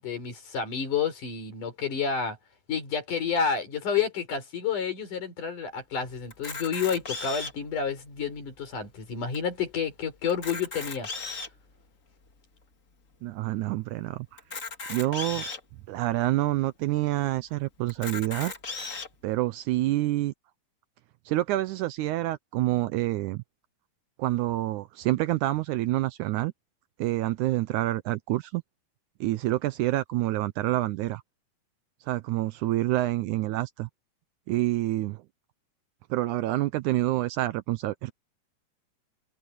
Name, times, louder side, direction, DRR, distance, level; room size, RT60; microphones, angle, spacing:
voice 1, 0.0-2.4 2.7-11.1, left 6 dB, 65° left, 5.9 m, -30 dB
Camera, 6.3-7.7 8.4-8.5 8.7-8.8 9.3-9.4 10.2-11.6 12.3-12.4 14.4-15.6 16.3-16.4 16.7-16.8 17.9-19.1, left 4 dB, 30° left, 1.9 m, -36 dB
voice 2, 13.2-14.3 14.9-15.5 15.9-18.5 19.2-20.3 21.3-23.4 24.2-26.5 27.0-28.6 29.2-31.2 32.1-33.9 34.5-35.2 36.1-38.1, right 16 dB, 80° right, 1.9 m, -27 dB
omnidirectional pair, 3.9 m